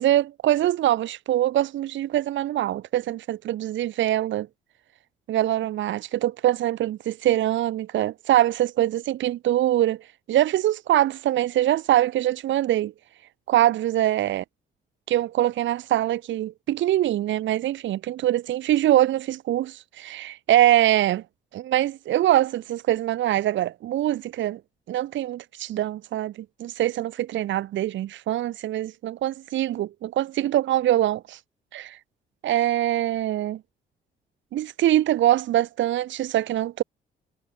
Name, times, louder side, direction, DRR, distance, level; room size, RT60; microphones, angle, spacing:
voice 1, 0.0-4.5 5.3-10.0 10.3-12.9 13.5-14.4 15.1-21.2 21.5-24.6 24.9-26.3 26.6-31.4 31.7-32.0 32.4-33.6 34.5-36.8, right 13 dB, 70° right, 0.9 m, -23 dB
cardioid pair, 90°, 20 cm